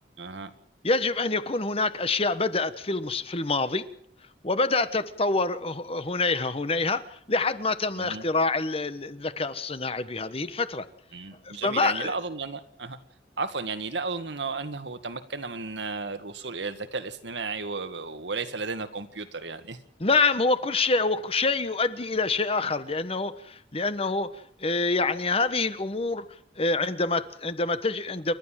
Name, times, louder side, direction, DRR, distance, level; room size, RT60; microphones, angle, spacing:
voice 1, 0.2-0.5 8.0-8.2 11.1-13.0 13.4-19.8, right 4 dB, 75° right, 9 dB, 1.8 m, -34 dB
voice 2, 0.8-3.8 4.4-7.0 7.3-10.8 11.4-12.1 20.0-24.3 24.6-26.2 26.6-28.3, left 3 dB, 35° left, 12 dB, 1.2 m, -26 dB
29.0 x 12.5 x 7.5 m, 0.67 s
head